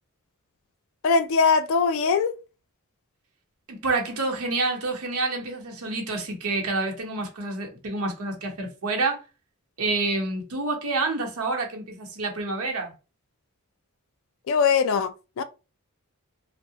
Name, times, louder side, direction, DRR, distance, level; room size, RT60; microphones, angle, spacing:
voice 1, 1.0-2.3 14.5-15.4, left 5 dB, 60° left, 0.3 m, -21 dB
voice 2, 3.7-9.2 9.8-12.9, right 3 dB, 75° right, 0.8 m, -28 dB
2.7 x 2.0 x 2.7 m
head